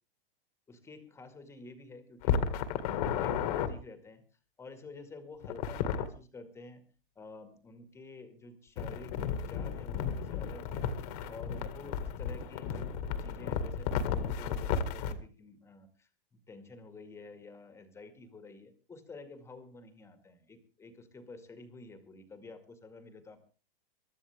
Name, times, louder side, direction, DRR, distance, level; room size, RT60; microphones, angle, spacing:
voice 1, 0.7-4.2 4.6-6.8 7.2-10.9 11.3-23.4, left 3 dB, 10° left, 8 dB, 2.1 m, -50 dB
sound 1, 2.2-3.7 5.4-6.1 8.8-15.1, left 7 dB, 45° left, 2.0 m, -33 dB
23.5 x 12.5 x 3.5 m, 0.36 s
hypercardioid pair, 150°, 29 cm